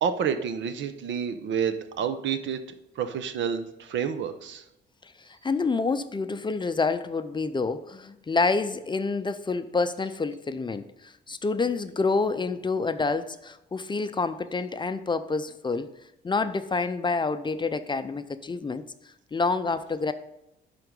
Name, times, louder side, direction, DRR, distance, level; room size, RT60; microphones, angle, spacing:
voice 1, 0.0-2.6 3.0-4.6, right 7 dB, 70° right, 9 dB, 0.8 m, -29 dB
voice 2, 5.0-15.9 16.2-18.8 19.3-20.1, left 4 dB, 25° left, 11 dB, 0.5 m, -28 dB
11.0 x 3.8 x 5.3 m, 0.89 s
cardioid pair, 90°, 20 cm